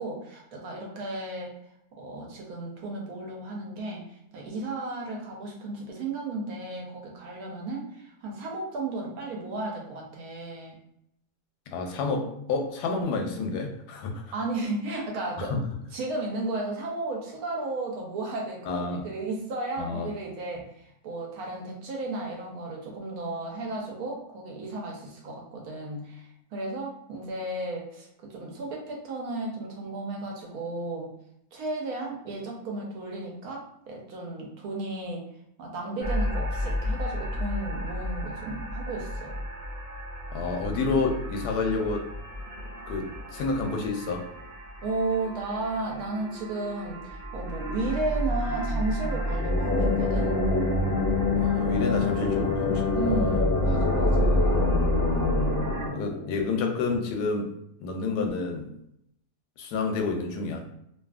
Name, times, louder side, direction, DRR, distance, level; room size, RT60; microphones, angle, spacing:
voice 1, 0.0-1.6 2.0-4.1 4.3-10.8 14.3-15.5 15.9-18.7 19.0-31.1 31.5-35.2 35.6-39.3 44.8-50.4 52.9-54.7, right 2 dB, 75° right, -1 dB, 1.1 m, -34 dB
voice 2, 11.7-14.2 15.4-15.6 18.7-19.0 19.8-20.1 40.3-42.0 42.9-44.3 51.4-53.5 55.9-57.5 57.8-58.7 59.6-60.7, left 4 dB, 90° left, 3 dB, 1.1 m, -29 dB
sound 1, 36.0-55.9, equal, 25° right, 0.8 m, -31 dB
sound 2, 49.2-56.8, left 3 dB, 55° left, 0.6 m, -26 dB
2.7 x 2.5 x 2.3 m, 0.75 s
omnidirectional pair, 1.7 m